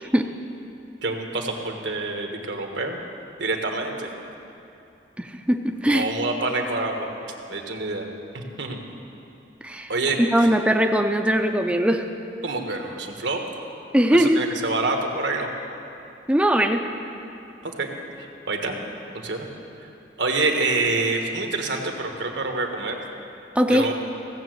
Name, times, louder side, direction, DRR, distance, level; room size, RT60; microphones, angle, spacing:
voice 1, 1.0-3.0 3.4-4.2 5.9-7.1 7.5-8.1 8.3-8.8 9.9-10.5 12.4-13.5 14.1-15.5 17.6-18.8 19.1-19.5 19.8-19.9 20.2-23.0 23.7-23.9, right 3 dB, 85° right, 3 dB, 1.4 m, -27 dB
voice 2, 5.2-6.1 9.6-9.9 10.2-12.0 13.9-14.4 16.3-16.8 23.6-23.9, equal, 5° right, 4 dB, 0.5 m, -20 dB
16.0 x 7.4 x 7.8 m, 2.8 s
head